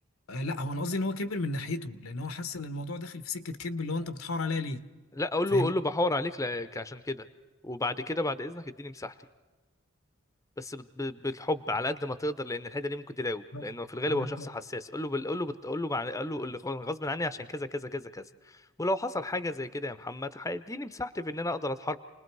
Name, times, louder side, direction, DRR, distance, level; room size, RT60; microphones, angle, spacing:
voice 1, 0.3-4.9 5.5-5.7 13.5-13.6 14.0-14.5, left 2 dB, 80° left, 11 dB, 1.1 m, -33 dB
voice 2, 5.2-7.3 7.6-9.1 10.6-22.0, left 2 dB, 15° left, 12 dB, 0.7 m, -32 dB
29.0 x 20.5 x 4.7 m, 1.3 s
head